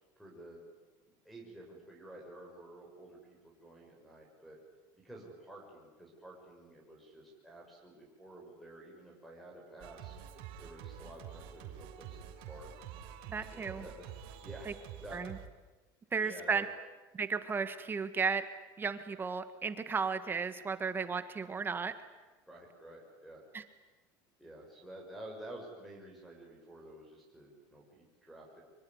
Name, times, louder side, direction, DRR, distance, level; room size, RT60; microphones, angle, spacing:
voice 1, 0.2-0.6 1.2-4.6 5.0-10.2 10.6-12.7 13.5-14.7 15.0-15.3 16.2-16.6 22.5-23.4 24.4-28.6, right 1 dB, ahead, 1 dB, 6.5 m, -51 dB
Singing, 9.8-15.5, right 9 dB, 60° right, 3.6 m, -48 dB
voice 2, 13.3-13.8 14.7-14.8 15.1-15.4 16.1-16.7 17.1-18.4 18.8-21.9 23.5-23.6, right 5 dB, 20° right, 10 dB, 1.6 m, -34 dB
25.0 x 23.5 x 9.8 m, 1.2 s
supercardioid pair, 140°, 11 cm